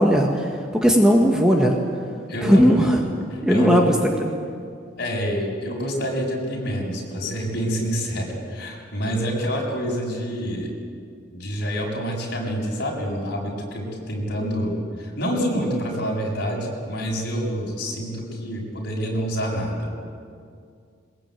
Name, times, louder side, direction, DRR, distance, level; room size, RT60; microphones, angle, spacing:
voice 1, 0.0-1.8 2.4-3.0 3.4-3.9 4.2-4.3, equal, 5° right, 0 dB, 1.7 m, -17 dB
voice 2, 2.3-2.9 3.3-3.8 5.0-10.7 11.3-14.7 15.0-19.9, equal, 55° left, -2 dB, 7.2 m, -27 dB
22.5 x 21.5 x 9.2 m, 2.2 s
head